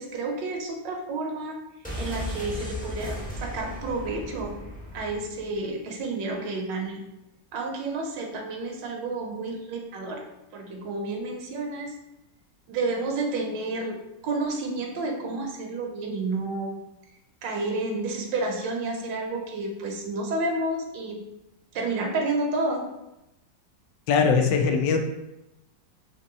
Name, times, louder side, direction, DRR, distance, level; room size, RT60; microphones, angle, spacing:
voice 1, 0.0-1.6 1.9-4.5 4.9-7.0 7.5-10.2 10.5-12.0 12.7-16.8 17.4-21.2 21.7-22.9, right 2 dB, 80° right, 2 dB, 1.4 m, -30 dB
sound 1, 1.8-5.6 5.9-6.0, equal, 10° left, 0.4 m, -36 dB
voice 2, 24.1-25.0, left 5 dB, 85° left, 5 dB, 1.3 m, -21 dB
3.7 x 2.9 x 3.8 m, 0.92 s
omnidirectional pair, 1.9 m